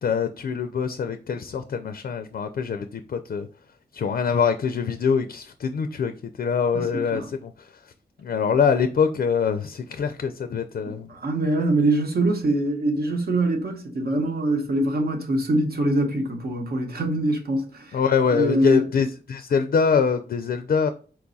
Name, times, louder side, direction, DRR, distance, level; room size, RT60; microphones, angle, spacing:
voice 1, 0.0-3.5 3.9-6.1 6.4-7.5 8.2-11.1 17.9-20.9, left 6 dB, 60° left, 0.4 m, -24 dB
voice 2, 6.7-7.3 11.1-18.0 18.3-18.9, right 1 dB, 70° right, 1.0 m, -24 dB
4.5 x 2.3 x 3.9 m
wide cardioid pair, 80°, 17 cm